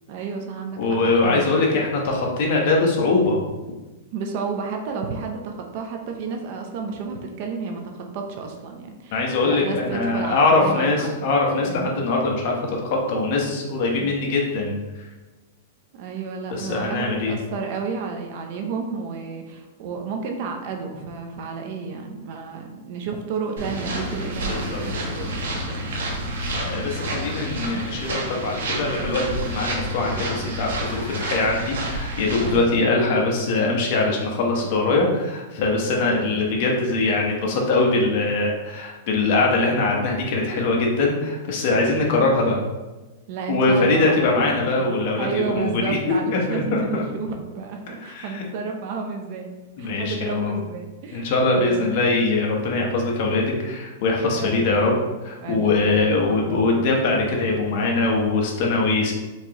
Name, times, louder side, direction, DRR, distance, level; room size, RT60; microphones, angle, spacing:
voice 1, 0.1-1.7 4.1-11.3 11.6-11.9 14.0-14.1 15.9-25.6 26.7-26.9 27.5-27.9 32.4-33.0 42.0-42.2 43.3-44.9 45.2-49.5 49.8-51.8 54.3-55.0 55.4-57.6, right 5 dB, 45° right, 3 dB, 0.5 m, -32 dB
voice 2, 0.8-3.4 9.1-14.7 16.5-17.4 24.5-25.7 26.6-42.6 43.5-47.0 48.0-48.4 49.8-50.6 51.1-54.9 55.2-59.1, left 3 dB, 45° left, -1 dB, 0.9 m, -22 dB
sound 1, 23.6-32.6, right 1 dB, 85° right, 0.9 m, -29 dB
4.4 x 2.9 x 2.9 m, 1.2 s
supercardioid pair, 160°, 0 cm